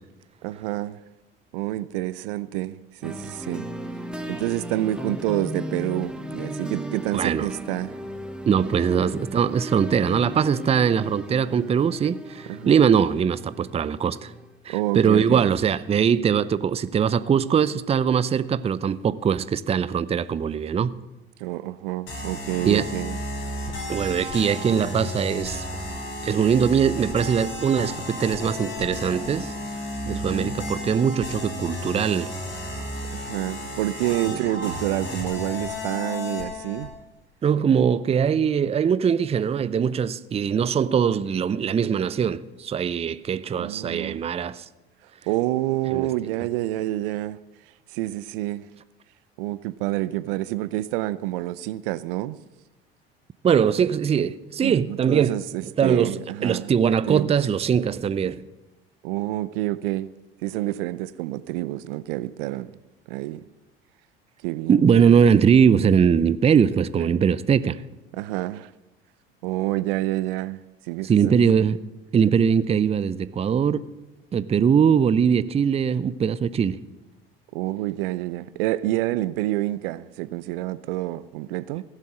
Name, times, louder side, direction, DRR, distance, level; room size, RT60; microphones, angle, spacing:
voice 1, 0.4-1.0 1.5-3.7 4.3-8.0 12.5-12.8 14.7-15.5 21.4-23.2 30.1-30.6 33.1-36.9 43.5-44.2 45.3-47.4 47.9-48.6 49.4-52.4 54.6-56.7 57.1-57.3 59.0-60.1 60.4-62.7 63.1-63.4 64.4-65.2 67.0-67.1 68.1-68.7 69.4-70.6 70.9-71.4 77.5-81.8, right 16 dB, 65° right, 0.6 m, -28 dB
sound 1, 3.0-14.5, equal, 5° right, 1.4 m, -36 dB
voice 2, 7.1-7.5 8.5-14.3 14.7-21.0 22.7-22.9 23.9-25.6 26.2-29.5 30.1-32.3 34.3-34.4 37.4-44.6 45.9-46.1 53.4-55.4 55.8-58.4 64.7-67.8 71.0-71.8 72.1-73.9 74.3-76.8, right 7 dB, 20° right, 0.5 m, -21 dB
sound 2, 22.1-36.9, left 1 dB, 40° left, 5.0 m, -33 dB
15.5 x 7.5 x 7.6 m
hypercardioid pair, 70°, 30 cm